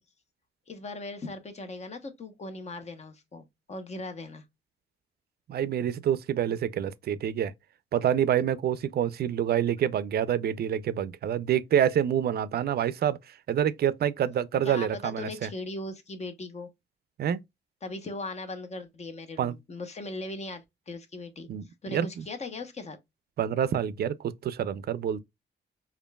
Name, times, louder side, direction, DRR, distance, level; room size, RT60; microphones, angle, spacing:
voice 1, 0.7-4.4 14.6-16.7 17.8-21.5 21.8-23.0, left 2 dB, 35° left, 0.9 m, -39 dB
voice 2, 5.5-7.5 7.9-13.2 13.5-15.5 17.2-17.4 19.4-19.6 21.5-22.2 23.4-25.2, right 9 dB, 60° right, 0.4 m, -27 dB
5.0 x 2.5 x 2.2 m
cardioid pair, 100°, 19 cm